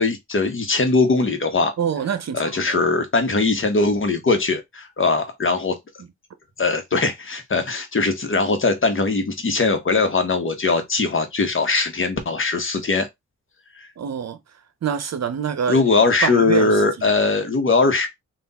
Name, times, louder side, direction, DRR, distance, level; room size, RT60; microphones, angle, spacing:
voice 1, 0.0-1.7 2.3-5.8 6.6-13.1 15.7-18.1, left 3 dB, 40° left, 1.2 m, -20 dB
voice 2, 1.8-2.8 14.0-14.4 14.8-15.8 16.2-17.1, right 7 dB, 55° right, 0.8 m, -26 dB
3.6 x 2.5 x 4.1 m
cardioid pair, 70°, 31 cm